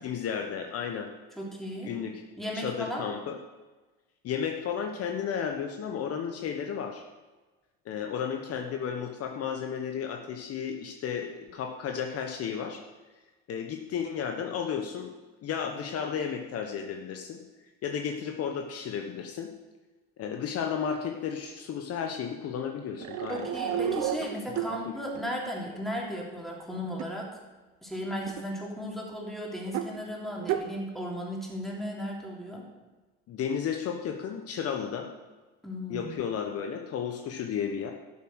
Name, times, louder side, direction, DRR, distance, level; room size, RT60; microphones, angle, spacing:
voice 1, 0.0-1.1 1.8-2.2 2.5-3.4 4.2-7.0 7.8-12.8 13.5-15.1 15.4-17.4 17.8-19.5 20.2-23.5 24.5-24.9 33.3-35.1 35.9-37.9, left 7 dB, 50° left, 4 dB, 1.2 m, -33 dB
voice 2, 1.4-1.9 2.4-3.1 23.3-27.3 27.8-32.6 35.6-36.1, equal, ahead, -2 dB, 3.4 m, -35 dB
sound 1, 23.0-24.7 25.1-25.2 26.9-27.1 28.3-28.4 29.7-29.9 30.4-30.7, right 9 dB, 65° right, 1.0 m, -31 dB
12.0 x 7.2 x 6.4 m, 1.2 s
supercardioid pair, 95°, 30 cm